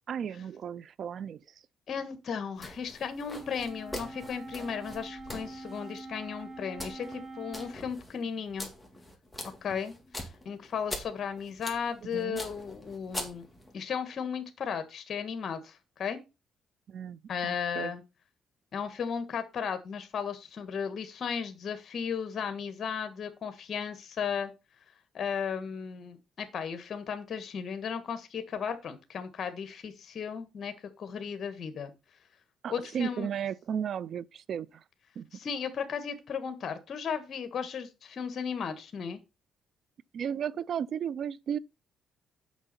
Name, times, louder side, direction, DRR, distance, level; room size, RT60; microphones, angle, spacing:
voice 1, 0.1-1.4 12.1-12.4 16.9-17.9 32.6-34.8 35.2-35.3 40.1-41.6, right 8 dB, 60° right, 0.5 m, -34 dB
voice 2, 1.9-8.7 9.6-9.9 10.4-13.5 13.7-16.2 17.3-18.0 18.7-24.5 25.1-31.9 32.7-33.3 35.3-39.2, left 7 dB, 55° left, 1.6 m, -35 dB
sound 1, 2.6-13.7, left 1 dB, 5° left, 3.2 m, -44 dB
Wind instrument woodwind instrument, 3.4-7.8, right 2 dB, 35° right, 2.4 m, -44 dB
8.1 x 6.1 x 5.8 m
cardioid pair, 90°, 0 cm